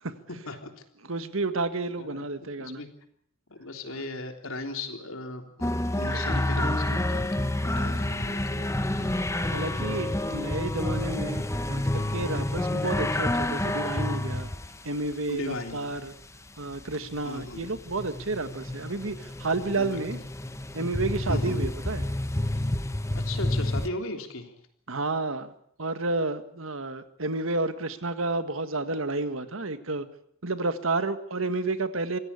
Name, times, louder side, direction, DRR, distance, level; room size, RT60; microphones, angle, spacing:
voice 1, 0.3-0.7 1.8-2.9 3.5-8.7 15.3-16.0 17.2-17.7 19.7-20.0 21.3-21.6 23.2-24.5, left 2 dB, 75° left, 5 dB, 3.5 m, -37 dB
voice 2, 1.0-2.8 3.9-4.0 6.0-6.2 6.5-7.0 8.9-9.3 9.5-11.4 11.7-14.5 14.8-16.1 16.6-20.2 20.7-22.1 24.9-30.1 30.4-32.2, right 3 dB, 75° right, 10 dB, 1.7 m, -31 dB
sound 1, 5.6-14.7 16.7-23.9, left 1 dB, 15° left, 1.0 m, -29 dB
25.0 x 16.5 x 8.3 m, 0.65 s
head